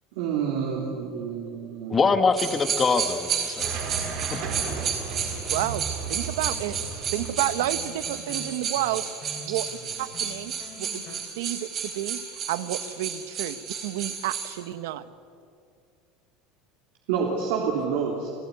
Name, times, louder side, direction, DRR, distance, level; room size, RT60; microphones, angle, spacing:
voice 1, 0.2-2.0 17.1-18.3, right 6 dB, 65° right, -2 dB, 3.5 m, -28 dB
voice 2, 1.9-3.8 4.3-4.4, left 4 dB, 15° left, 9 dB, 1.2 m, -23 dB
sound 1, 2.4-14.5, right 7 dB, 25° right, 3.9 m, -32 dB
sound 2, 3.6-8.3, right 6 dB, 50° right, 4.7 m, -35 dB
Guitar, 3.9-11.3, left 3 dB, 35° left, 4.2 m, -46 dB
voice 3, 5.5-6.8 7.1-9.0 9.4-9.6 10.0-10.5 10.8-12.2 12.5-15.1, right 14 dB, 85° right, 13 dB, 1.2 m, -30 dB
29.5 x 17.0 x 9.7 m, 2.4 s
cardioid pair, 175°, 0 cm